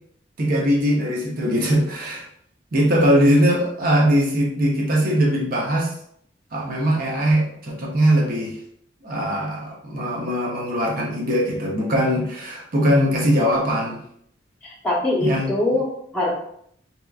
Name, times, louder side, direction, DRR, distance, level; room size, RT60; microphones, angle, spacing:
voice 1, 0.4-2.3 2.7-5.9 6.5-8.6 9.0-14.0 15.2-15.5, equal, 50° right, -1 dB, 0.6 m, -20 dB
voice 2, 14.6-16.3, left 2 dB, 5° left, -11 dB, 0.7 m, -23 dB
2.8 x 2.3 x 2.3 m, 0.69 s
head